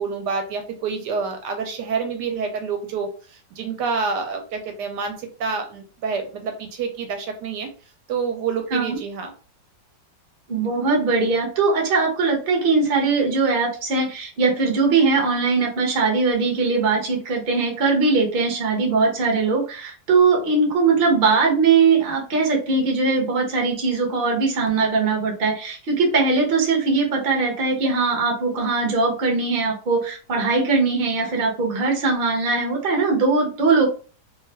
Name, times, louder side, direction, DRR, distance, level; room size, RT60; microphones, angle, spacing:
voice 1, 0.0-7.7 8.1-9.3, right 5 dB, 75° right, 5 dB, 1.2 m, -28 dB
voice 2, 10.5-33.9, right 4 dB, 45° right, 0 dB, 0.7 m, -20 dB
2.8 x 2.3 x 3.2 m, 0.37 s
omnidirectional pair, 1.9 m